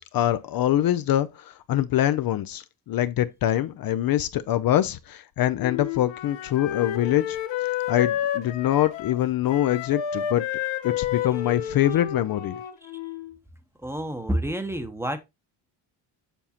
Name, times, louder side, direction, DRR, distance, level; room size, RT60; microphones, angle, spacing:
voice 1, 0.0-7.4 7.6-10.4 10.8-12.6, left 12 dB, 55° left, 0.5 m, -24 dB
Wind instrument woodwind instrument, 5.6-13.3, left 10 dB, 80° left, 1.2 m, -30 dB
voice 2, 13.8-15.2, right 1 dB, 5° right, 0.8 m, -28 dB
7.1 x 5.6 x 2.8 m
cardioid pair, 115°, 44 cm